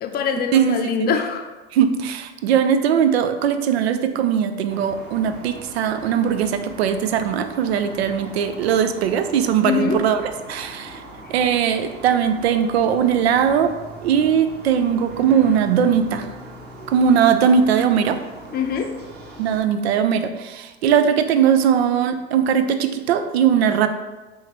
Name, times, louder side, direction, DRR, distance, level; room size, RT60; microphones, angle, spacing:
voice 1, 0.0-1.5 9.6-10.0 18.5-18.9, left 6 dB, 30° left, 5 dB, 0.5 m, -23 dB
voice 2, 0.5-1.1 1.7-11.0 11.3-13.7 14.0-16.3 16.9-18.2 19.4-23.9, right 8 dB, 75° right, 9 dB, 0.5 m, -19 dB
sound 1, 4.7-19.6, right 1 dB, 30° right, 1.1 m, -40 dB
4.7 x 3.2 x 3.0 m, 1.2 s
hypercardioid pair, 75°, 32 cm